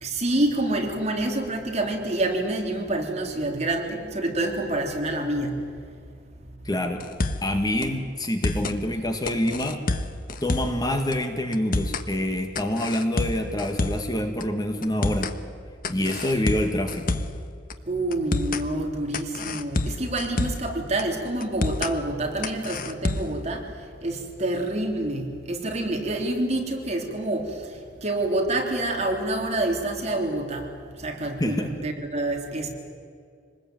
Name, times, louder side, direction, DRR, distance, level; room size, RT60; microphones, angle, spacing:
voice 1, 0.0-5.6 17.9-23.7 24.0-27.6 28.0-30.7 31.0-32.7, right 1 dB, 35° right, 2 dB, 3.4 m, -27 dB
voice 2, 6.6-7.1 7.4-9.8 10.4-15.3 15.9-17.2 31.4-31.7, left 1 dB, 20° left, 5 dB, 1.9 m, -26 dB
sound 1, 7.0-7.5 7.8-7.9 8.2-8.8 9.3-10.8 11.1-11.2 11.5-12.1 12.5-14.1 14.4-14.5 14.8-15.4 15.8-17.4 17.7-17.8 18.1-18.6 19.1-20.7 21.0-21.1 21.4-21.9 22.4-23.4, left 2 dB, 45° left, 1.2 m, -28 dB
26.0 x 20.5 x 9.2 m, 2.3 s
head